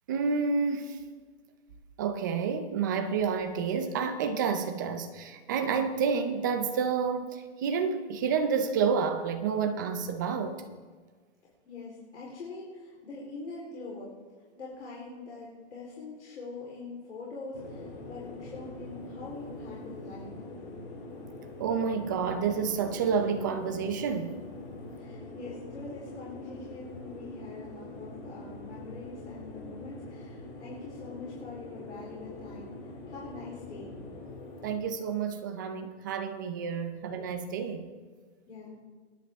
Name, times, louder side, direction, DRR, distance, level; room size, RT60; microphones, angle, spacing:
voice 1, 0.1-1.0 2.0-10.6 21.6-24.4 34.6-37.9, right 6 dB, 20° right, 0.6 m, -29 dB
voice 2, 11.6-14.1 14.6-20.8 25.0-33.9 38.5-38.8, left 3 dB, 80° left, 3.9 m, -44 dB
sound 1, 17.5-34.8, left 2 dB, 30° left, 2.2 m, -44 dB
26.5 x 10.0 x 3.6 m
hypercardioid pair, 170°, 34 cm